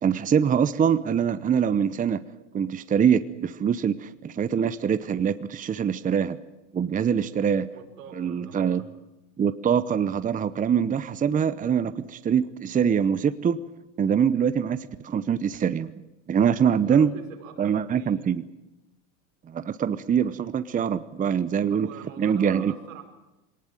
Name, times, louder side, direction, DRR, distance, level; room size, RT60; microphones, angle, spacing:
voice 1, 0.0-2.2 2.5-6.4 6.7-7.7 8.2-8.8 9.4-13.6 14.0-15.9 16.3-17.1 17.6-18.4 19.5-21.9 22.2-22.7, right 7 dB, 20° right, 13 dB, 0.8 m, -24 dB
voice 2, 7.7-8.9 16.6-18.3 20.8-21.0 21.3-23.0, right 7 dB, 90° right, 3 dB, 5.2 m, -45 dB
22.0 x 19.0 x 9.0 m, 0.94 s
supercardioid pair, 110°, 38 cm